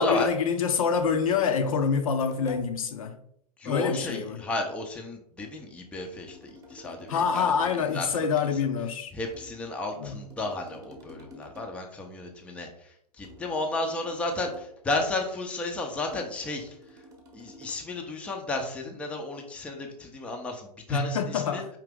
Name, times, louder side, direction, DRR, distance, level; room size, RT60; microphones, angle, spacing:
voice 1, 0.0-3.1 3.6-4.4 7.1-9.1 10.0-10.2 20.9-21.7, left 6 dB, 55° left, 0.6 m, -26 dB
sound 1, 0.9-2.8 5.4-8.2 9.3-11.8 13.2-14.8 16.1-17.9, left 1 dB, 15° right, 0.9 m, -50 dB
voice 2, 3.6-6.4 6.7-7.5 7.9-8.1 9.1-12.9 13.2-16.7 17.3-21.6, left 2 dB, 5° left, 0.5 m, -33 dB
4.8 x 2.8 x 3.5 m
figure-of-eight pair, 115°, 21 cm